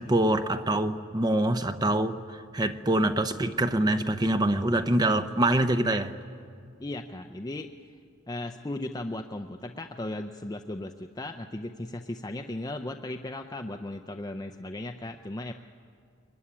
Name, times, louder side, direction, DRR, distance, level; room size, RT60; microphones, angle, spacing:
voice 1, 0.0-6.1, right 1 dB, 20° right, 9 dB, 0.7 m, -25 dB
voice 2, 6.8-7.7 8.3-15.5, left 1 dB, 20° left, 5 dB, 0.6 m, -36 dB
24.0 x 22.0 x 9.8 m, 2.3 s
head